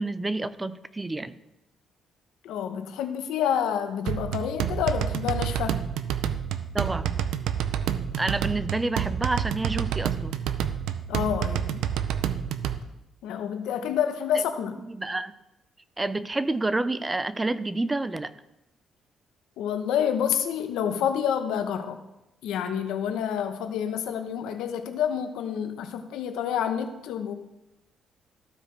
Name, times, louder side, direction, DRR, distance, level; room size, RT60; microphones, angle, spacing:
voice 1, 0.0-1.3 6.7-7.2 8.2-10.4 14.3-14.4 14.8-15.3 16.0-18.3, right 2 dB, 20° right, 14 dB, 0.4 m, -29 dB
voice 2, 2.4-5.8 11.1-11.9 13.2-14.8 19.6-22.0 22.4-27.4, left 8 dB, 90° left, 8 dB, 0.8 m, -28 dB
sound 1, 4.1-12.8, right 9 dB, 85° right, 0.5 m, -28 dB
14.0 x 4.9 x 3.3 m, 0.90 s
cardioid pair, 90°, 0 cm